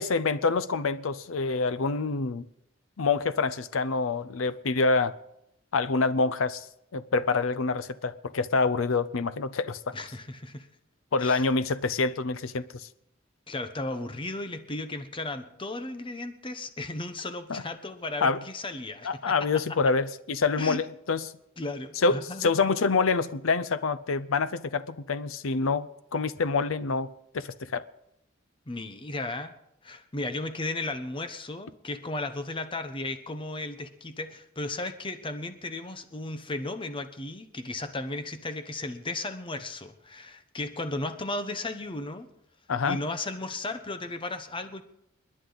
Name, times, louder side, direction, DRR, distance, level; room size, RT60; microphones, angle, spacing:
voice 1, 0.0-2.5 3.0-5.1 5.7-6.7 6.9-9.9 11.1-12.9 17.5-17.6 18.2-18.4 19.0-21.2 22.0-27.1 27.3-27.8 42.7-43.0, left 4 dB, 85° left, 0.6 m, -26 dB
voice 2, 9.9-10.7 11.2-11.5 13.5-19.5 20.5-20.8 21.6-22.5 28.7-29.5 29.8-42.3 42.9-44.8, left 2 dB, 25° left, 1.0 m, -35 dB
30.0 x 10.0 x 4.0 m
head